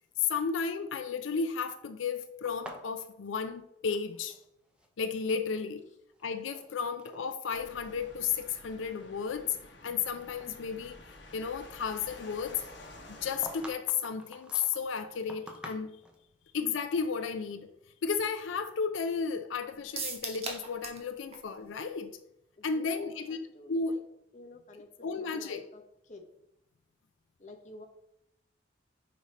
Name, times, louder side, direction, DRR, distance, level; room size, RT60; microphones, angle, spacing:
voice 1, 0.2-4.4 5.0-5.9 6.2-9.6 9.8-12.6 13.1-15.9 16.5-17.7 18.0-22.2 22.6-24.0 25.0-25.6, left 6 dB, 85° left, 0.4 m, -33 dB
sound 1, 2.5-4.5 4.7-5.5 6.1-6.7 7.0-7.2 7.9-8.0 8.5-10.1 10.4-10.5 12.8-16.2, right 1 dB, 5° right, 0.7 m, -48 dB
sound 2, 7.5-13.7, left 2 dB, 65° left, 1.1 m, -51 dB
sound 3, 20.0-21.1 21.3-21.4 21.8-21.9, right 4 dB, 35° right, 1.0 m, -37 dB
voice 2, 22.6-24.0 24.3-25.8 26.1-26.2 27.4-27.8, left 2 dB, 40° left, 0.9 m, -50 dB
5.3 x 5.0 x 4.1 m
head